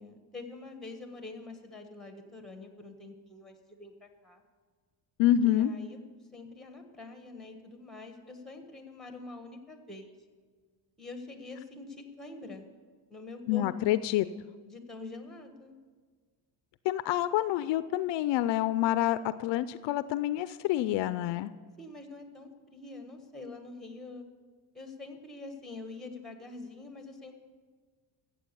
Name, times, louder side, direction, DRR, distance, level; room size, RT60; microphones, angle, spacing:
voice 1, 0.0-4.4 5.4-6.0 6.3-10.1 11.0-12.7 13.1-14.0 14.7-15.7 21.8-24.3 24.7-27.3, left 3 dB, ahead, 5 dB, 1.4 m, -45 dB
voice 2, 5.2-5.7 13.5-14.3 16.8-21.5, left 13 dB, 70° left, 14 dB, 0.5 m, -27 dB
15.0 x 7.6 x 6.9 m, 1.5 s
cardioid pair, 145°, 45 cm